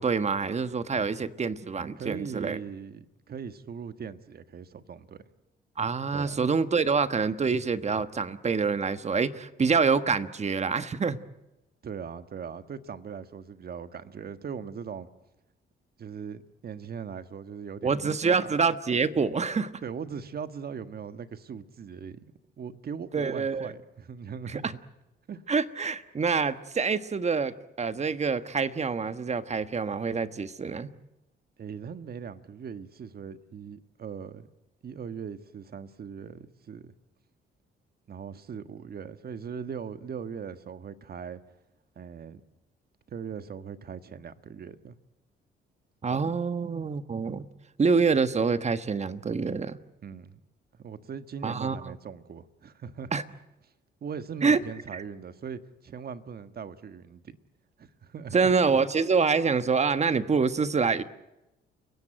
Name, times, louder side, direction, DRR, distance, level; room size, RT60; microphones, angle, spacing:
voice 1, 0.0-2.6 5.8-11.2 17.8-19.7 23.1-23.7 24.5-24.7 25.5-30.9 46.0-47.5 47.8-49.8 51.4-51.9 53.1-53.2 54.4-54.6 54.9-55.0 58.3-61.0, right 5 dB, 35° right, 1.3 m, -26 dB
voice 2, 2.0-5.2 6.1-6.4 11.8-15.1 16.0-18.5 19.8-24.8 25.3-25.4 31.6-34.5 34.8-36.9 38.1-41.4 41.9-42.4 43.1-45.0 46.1-46.2 50.0-50.4 50.7-53.1 54.0-57.4 57.8-58.5, right 6 dB, 50° right, 1.6 m, -40 dB
29.5 x 16.5 x 9.0 m
cardioid pair, 90°, 20 cm